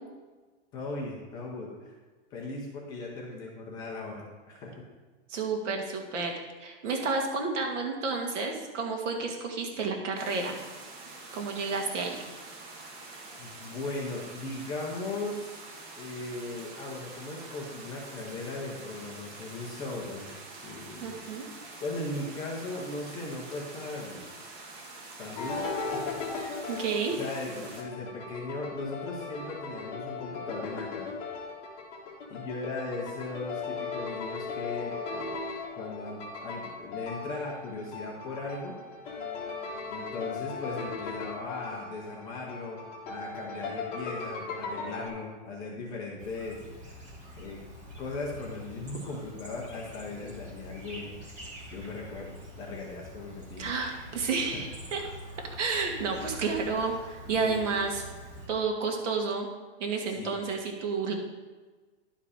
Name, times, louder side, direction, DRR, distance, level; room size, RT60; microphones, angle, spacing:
voice 1, 0.7-1.9 2.3-4.8 13.4-15.5 16.0-20.3 20.6-21.2 21.8-24.2 25.2-26.2 27.2-31.1 32.3-35.4 35.8-38.8 39.9-46.6 47.3-47.6 48.0-51.2 51.7-53.7 54.5-54.6 57.4-57.7 60.2-60.4, left 3 dB, 10° left, -2 dB, 0.5 m, -38 dB
voice 2, 5.3-10.6 11.3-12.2 21.0-21.4 26.7-27.2 53.6-55.0 55.6-58.0 58.5-59.5 59.8-61.1, right 4 dB, 80° right, 2 dB, 2.1 m, -31 dB
sound 1, 10.2-27.8, right 3 dB, 40° right, 1.6 m, -46 dB
sound 2, 25.3-45.1, left 4 dB, 35° left, 1.7 m, -38 dB
Chirp tweet, 46.2-58.5, equal, 20° right, 1.5 m, -45 dB
11.0 x 5.0 x 4.9 m, 1.3 s
supercardioid pair, 170°, 37 cm